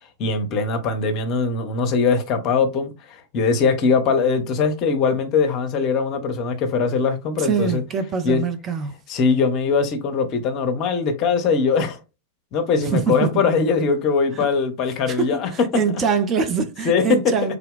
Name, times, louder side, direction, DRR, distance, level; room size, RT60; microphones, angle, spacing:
voice 1, 0.2-7.8 8.2-8.4 9.1-12.0 12.5-15.5 16.8-17.0, left 5 dB, 40° left, 0.7 m, -21 dB
voice 2, 7.4-8.9 12.8-13.4 14.3-14.5 15.1-17.6, right 6 dB, 25° right, 0.5 m, -24 dB
3.4 x 2.2 x 3.7 m
figure-of-eight pair, 90°, 0 cm